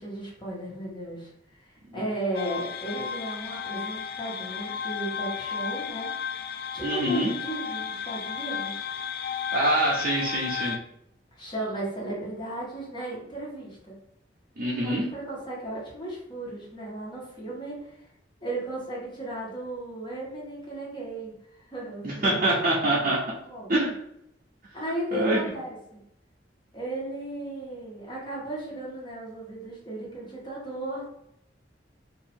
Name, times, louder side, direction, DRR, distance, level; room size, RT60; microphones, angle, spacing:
voice 1, 0.0-6.1 6.7-8.8 11.4-14.0 14.8-17.8 18.4-22.7 23.4-23.7 24.7-26.0 26.7-31.1, right 1 dB, 25° left, -5 dB, 1.4 m, -35 dB
sound 1, 2.3-10.8, left 7 dB, 60° left, 0.3 m, -33 dB
voice 2, 6.8-7.3 9.5-10.8 14.6-15.1 22.0-23.2 23.7-24.0 25.1-25.4, right 1 dB, 50° right, -7 dB, 0.8 m, -25 dB
2.9 x 2.7 x 4.3 m, 0.78 s
head